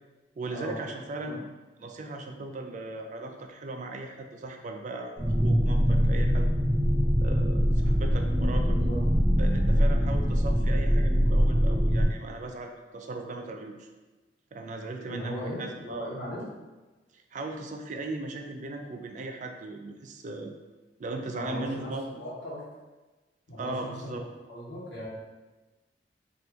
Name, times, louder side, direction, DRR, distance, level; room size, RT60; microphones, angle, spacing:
voice 1, 0.4-1.5 1.8-6.5 7.2-8.8 9.4-13.9 14.5-16.1 17.1-20.5 21.0-22.2 23.6-24.2, right 2 dB, 45° right, 4 dB, 0.3 m, -38 dB
sound 1, 5.2-12.0, equal, ahead, 0.8 m, -23 dB
voice 2, 15.0-16.4 21.3-21.9 22.2-22.7 23.5-24.2 24.5-25.1, equal, 85° left, -8 dB, 1.1 m, -37 dB
2.8 x 2.5 x 3.4 m, 1.2 s
head